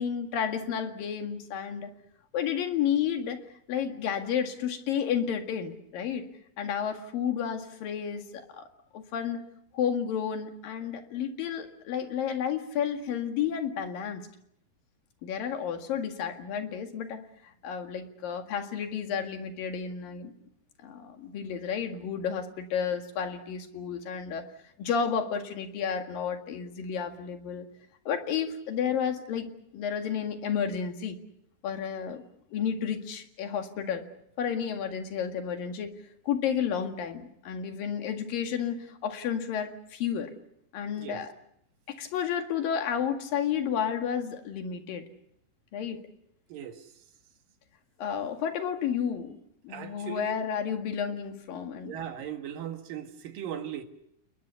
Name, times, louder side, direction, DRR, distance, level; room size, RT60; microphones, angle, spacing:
voice 1, 0.0-1.9 2.3-3.4 3.7-6.3 6.6-8.7 8.9-9.4 9.7-14.2 15.2-17.3 17.6-20.3 20.8-24.5 24.8-27.7 28.1-31.2 31.6-32.2 32.5-34.1 34.4-35.9 36.3-40.3 40.7-41.3 41.9-45.1 45.7-46.0 48.0-49.4 49.6-52.0, left 8 dB, 85° left, 3.7 m, -31 dB
voice 2, 46.5-46.8 49.7-50.3 51.9-53.8, right 9 dB, 80° right, 3.4 m, -38 dB
29.5 x 21.0 x 7.0 m
omnidirectional pair, 3.9 m